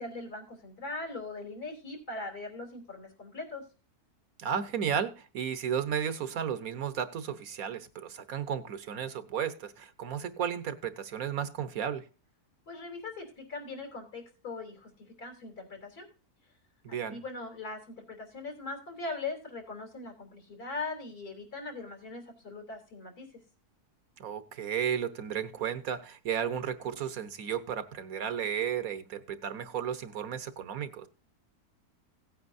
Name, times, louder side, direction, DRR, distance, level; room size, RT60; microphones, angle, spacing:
voice 1, 0.0-3.6 12.7-16.1 16.9-23.3, left 3 dB, 80° left, 3.9 m, -40 dB
voice 2, 4.4-12.1 16.8-17.2 24.2-31.1, right 8 dB, 70° right, 1.4 m, -33 dB
17.0 x 8.8 x 2.6 m
omnidirectional pair, 1.6 m